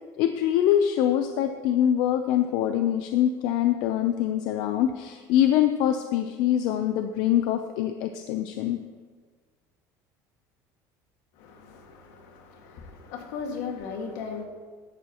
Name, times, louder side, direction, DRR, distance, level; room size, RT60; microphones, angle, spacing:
voice 1, 0.2-8.8, left 10 dB, 60° left, 7 dB, 0.6 m, -24 dB
voice 2, 11.4-14.4, left 5 dB, 75° left, 2 dB, 2.0 m, -37 dB
15.0 x 11.0 x 3.0 m, 1.5 s
cardioid pair, 170°, 8 cm